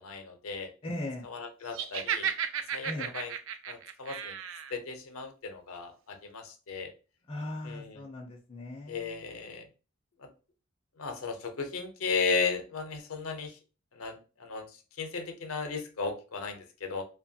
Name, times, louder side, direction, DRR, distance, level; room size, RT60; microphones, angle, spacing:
voice 1, 0.0-0.7 1.2-2.3 2.7-3.3 3.7-4.3 4.7-6.9 7.6-8.0 8.9-9.7 10.2-10.3 11.0-13.6 13.9-17.0, left 5 dB, 80° left, 5 dB, 0.6 m, -35 dB
voice 2, 0.8-1.2 2.8-3.1 7.3-9.2, left 1 dB, 25° left, -1 dB, 0.4 m, -38 dB
Laughter, 1.7-4.7, right 8 dB, 65° right, 0.3 m, -34 dB
2.8 x 2.2 x 2.7 m, 0.33 s
head